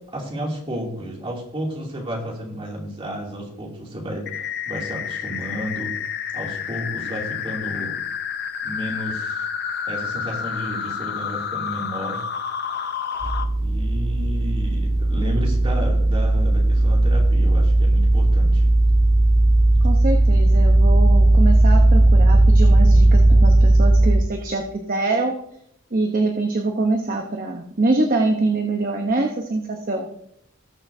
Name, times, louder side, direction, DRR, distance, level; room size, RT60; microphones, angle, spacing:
voice 1, 0.1-5.9 6.3-8.0 8.6-9.4 9.9-12.2 13.6-18.6, equal, 25° right, -2 dB, 2.6 m, -32 dB
sound 1, 4.3-13.4, left 7 dB, 50° left, 0.7 m, -29 dB
sound 2, 13.2-24.2, right 1 dB, 70° right, 1.6 m, -16 dB
voice 2, 19.8-25.3 25.9-30.1, right 2 dB, 40° right, 2 dB, 0.9 m, -24 dB
19.5 x 6.5 x 2.7 m, 0.72 s
head